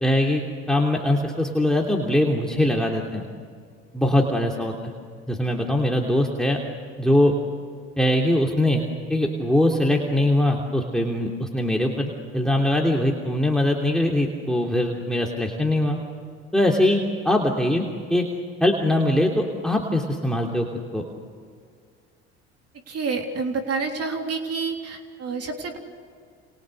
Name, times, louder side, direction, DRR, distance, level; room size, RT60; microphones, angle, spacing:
voice 1, 0.0-3.2 3.9-4.9 5.3-6.6 7.0-7.3 8.0-8.8 9.1-16.0 16.5-17.8 18.1-18.3 18.6-20.7 20.9-21.1, left 1 dB, ahead, 0 dB, 3.2 m, -22 dB
voice 2, 22.9-25.8, right 4 dB, 45° right, 3 dB, 3.5 m, -28 dB
29.0 x 28.5 x 6.7 m, 2.1 s
hypercardioid pair, 70°, 33 cm